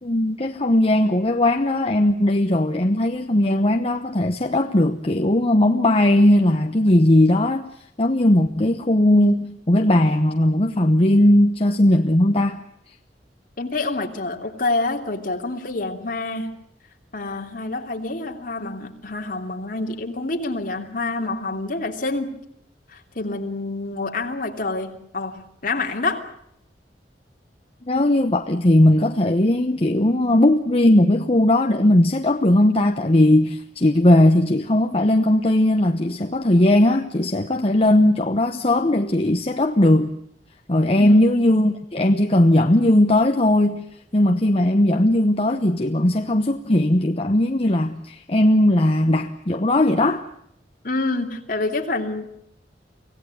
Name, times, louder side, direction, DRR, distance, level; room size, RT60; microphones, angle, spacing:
voice 1, 0.0-12.6 27.8-40.1 40.7-50.2, left 1 dB, 35° left, 5 dB, 1.0 m, -18 dB
voice 2, 13.6-16.5 17.1-22.4 22.9-26.2 40.9-41.3 50.8-52.2, left 2 dB, 50° left, 3 dB, 3.0 m, -27 dB
25.5 x 17.5 x 9.4 m, 0.74 s
head